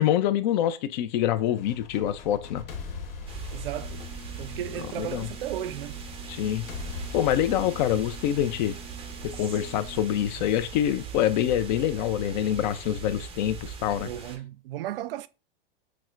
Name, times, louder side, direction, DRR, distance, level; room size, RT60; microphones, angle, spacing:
voice 1, 0.0-2.6 5.0-5.3 6.3-6.7 7.1-8.8 9.2-14.1, left 11 dB, 50° left, 0.4 m, -25 dB
sound 1, 1.4-5.5 6.7-9.5, left 4 dB, 70° left, 1.0 m, -40 dB
sound 2, 3.3-14.4, right 5 dB, 20° right, 0.6 m, -41 dB
voice 2, 3.5-4.0 4.4-6.0 14.0-15.3, right 12 dB, 70° right, 0.5 m, -35 dB
sound 3, 3.8-10.0, right 4 dB, 30° left, 1.1 m, -48 dB
5.5 x 2.0 x 2.4 m
hypercardioid pair, 120°, 29 cm